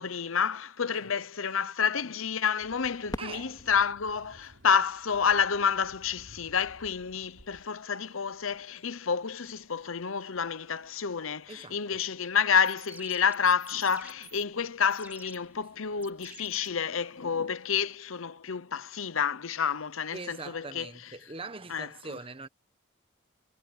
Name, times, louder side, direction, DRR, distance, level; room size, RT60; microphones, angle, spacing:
voice 1, 0.0-20.9 21.7-22.2, left 6 dB, 70° left, 0.9 m, -29 dB
sound 1, 2.6-15.9, right 1 dB, 80° right, 3.3 m, -60 dB
Fireworks, 3.1-5.8 6.5-6.6 7.3-7.8 9.7-9.8, left 1 dB, 20° left, 2.8 m, -45 dB
voice 2, 3.2-3.6 11.5-12.0 20.1-22.5, right 3 dB, 25° right, 1.1 m, -42 dB
sound 2, 12.5-17.5, right 2 dB, 10° right, 2.2 m, -51 dB
head